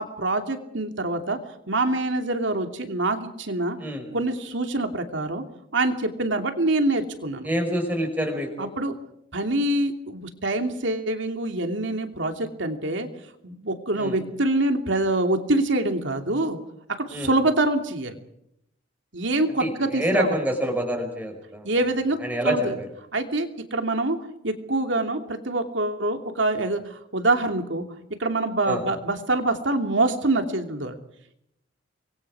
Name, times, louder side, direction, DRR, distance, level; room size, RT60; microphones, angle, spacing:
voice 1, 0.0-1.4 1.7-3.8 4.1-5.4 5.7-7.5 8.6-9.0 9.3-13.1 13.4-16.6 17.0-18.2 19.1-20.4 21.6-22.2 22.4-22.8 23.1-24.2 24.4-27.8 28.2-31.0, right 2 dB, 65° right, 5 dB, 2.9 m, -25 dB
voice 2, 3.8-4.1 7.4-8.7 13.9-14.2 17.1-17.3 19.6-21.7 22.2-22.9 28.7-28.8, equal, 10° right, 3 dB, 5.2 m, -27 dB
28.5 x 23.5 x 4.9 m, 0.76 s
head